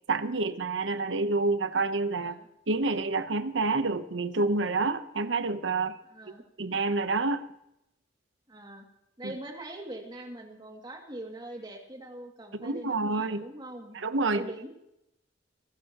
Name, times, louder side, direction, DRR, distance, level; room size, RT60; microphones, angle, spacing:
voice 1, 0.1-2.4 2.7-6.0 6.6-7.4 9.2-9.3 12.5-13.4 13.9-14.7, right 3 dB, 80° right, 12 dB, 0.9 m, -28 dB
voice 2, 6.0-6.4 8.5-8.9 9.2-14.0 14.2-14.7, right 1 dB, 25° right, 2 dB, 2.4 m, -42 dB
24.0 x 13.0 x 3.0 m, 0.83 s
head